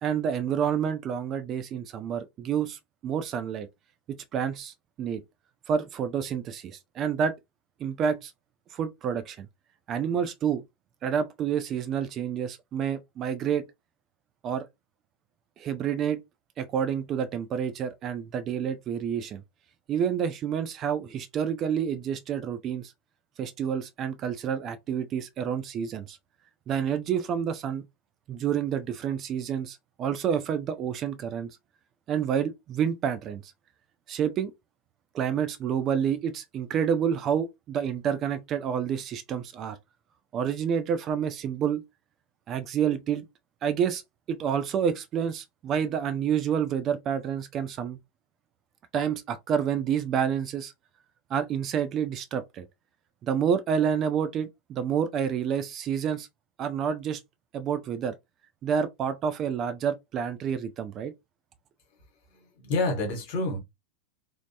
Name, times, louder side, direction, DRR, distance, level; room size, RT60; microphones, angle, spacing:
voice 1, 0.0-3.7 4.1-5.2 5.7-7.3 7.8-8.3 8.7-9.5 9.9-10.6 11.0-13.7 14.4-14.7 15.6-16.2 16.6-19.4 19.9-22.9 23.4-26.2 26.7-27.8 28.3-31.5 32.1-33.4 34.1-34.5 35.1-39.8 40.3-41.8 42.5-43.3 43.6-44.0 44.3-48.0 48.9-50.7 51.3-52.6 53.2-56.3 56.6-57.2 57.5-58.1 58.6-61.1, right 8 dB, 30° right, 0.3 m, -28 dB
voice 2, 62.3-63.6, left 2 dB, 45° left, 1.1 m, -28 dB
3.1 x 2.0 x 2.7 m
figure-of-eight pair, 90°, 0 cm